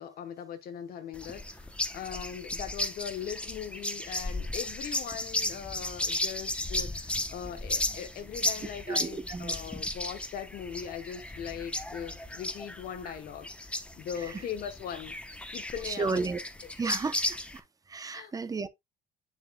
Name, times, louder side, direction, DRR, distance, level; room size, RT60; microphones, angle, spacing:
voice 1, 0.0-15.2 15.5-16.2 18.1-18.3, left 8 dB, 60° left, 1.0 m, -40 dB
sound 1, 1.1-17.6, left 1 dB, 5° left, 0.9 m, -35 dB
voice 2, 8.9-9.6 15.8-16.4 16.8-18.7, right 4 dB, 20° right, 0.7 m, -33 dB
7.1 x 6.6 x 2.3 m
cardioid pair, 110°, 17 cm